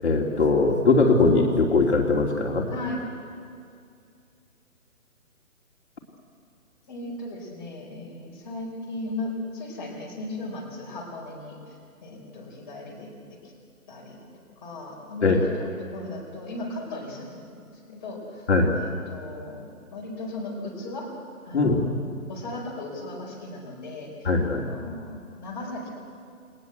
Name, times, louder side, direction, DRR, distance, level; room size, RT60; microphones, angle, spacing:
voice 1, 0.0-2.7 15.2-15.4 18.5-18.7 21.5-21.9 24.2-24.6, left 3 dB, 50° left, 0 dB, 2.9 m, -20 dB
voice 2, 2.7-3.0 6.9-11.7 12.0-13.1 13.4-13.5 13.9-14.2 14.6-18.5 18.7-19.6 19.9-21.1 21.4-21.9 22.3-25.9, left 2 dB, 15° left, -3 dB, 4.4 m, -37 dB
29.5 x 22.0 x 8.0 m, 2.3 s
hypercardioid pair, 170°, 42 cm